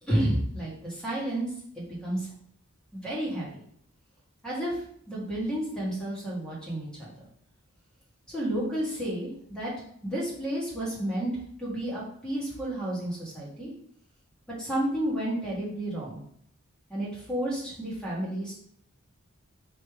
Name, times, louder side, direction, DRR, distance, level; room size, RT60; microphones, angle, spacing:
voice 1, 0.0-1.5 1.7-2.3 2.9-3.6 4.4-4.8 5.1-7.1 8.3-9.7 10.0-11.3 11.6-13.7 14.6-16.2 16.9-18.6, right 1 dB, 5° left, -6 dB, 1.5 m, -31 dB
3.3 x 3.1 x 4.6 m, 0.66 s
head